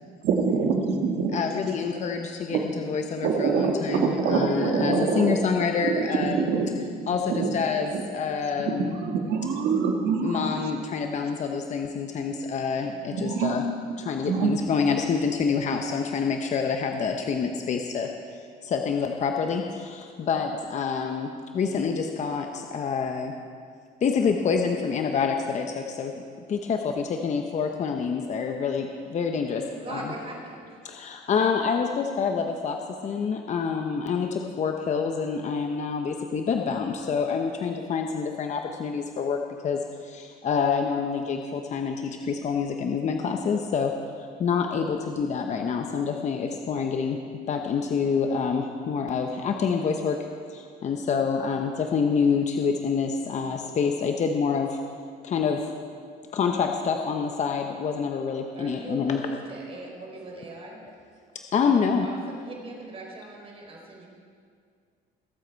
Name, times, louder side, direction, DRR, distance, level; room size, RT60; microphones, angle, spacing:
voice 1, 0.2-1.4 2.5-2.6 3.2-5.4 5.8-6.7 7.0-7.5 8.7-10.5 13.1-13.5 14.2-14.5, right 5 dB, 80° right, 2 dB, 1.7 m, -25 dB
voice 2, 1.3-6.5 7.1-8.9 10.2-13.6 14.0-18.1 18.6-23.3 24.0-26.1 26.5-30.1 30.8-43.9 44.2-47.2 47.5-50.2 50.5-54.8 55.2-55.7 56.3-59.2 60.8-60.9 61.5-62.1, left 6 dB, 45° left, 4 dB, 0.9 m, -27 dB
voice 3, 29.7-30.7 58.6-60.8 62.0-64.1, right 2 dB, 35° right, -1 dB, 3.7 m, -40 dB
21.5 x 7.8 x 4.6 m, 2.1 s
cardioid pair, 110°, 17 cm